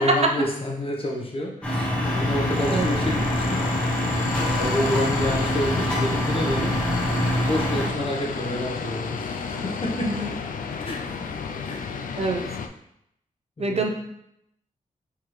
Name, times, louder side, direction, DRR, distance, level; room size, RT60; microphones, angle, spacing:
voice 1, 0.0-3.7 4.0-6.7 7.5-10.3 10.7-11.3 11.6-11.9 13.6-13.9, left 1 dB, 40° left, -1 dB, 1.0 m, -29 dB
sound 1, 1.6-7.9, equal, 10° left, 1.1 m, -25 dB
sound 2, 2.0-12.7, left 5 dB, 75° left, 0.4 m, -32 dB
voice 2, 13.6-13.9, right 3 dB, 50° right, 3 dB, 0.7 m, -26 dB
4.6 x 3.6 x 3.1 m, 0.78 s
wide cardioid pair, 95°, 14 cm